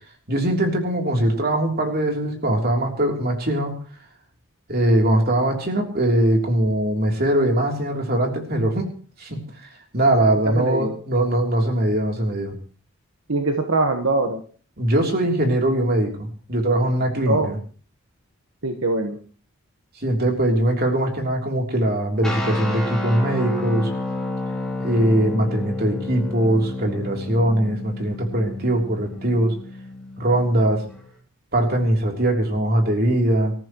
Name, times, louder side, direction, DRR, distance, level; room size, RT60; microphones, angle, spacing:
voice 1, 0.3-3.7 4.7-8.8 9.2-9.4 9.9-12.5 14.8-17.6 20.0-23.9 24.8-29.5 30.2-30.8 31.5-33.5, right 1 dB, 45° right, 2 dB, 3.3 m, -21 dB
voice 2, 10.6-10.9 13.3-14.4 17.3-17.5 18.6-19.2, right 2 dB, 75° right, 5 dB, 1.4 m, -22 dB
sound 1, 22.2-31.1, left 2 dB, 5° left, 2.9 m, -30 dB
26.0 x 14.0 x 3.1 m, 0.41 s
head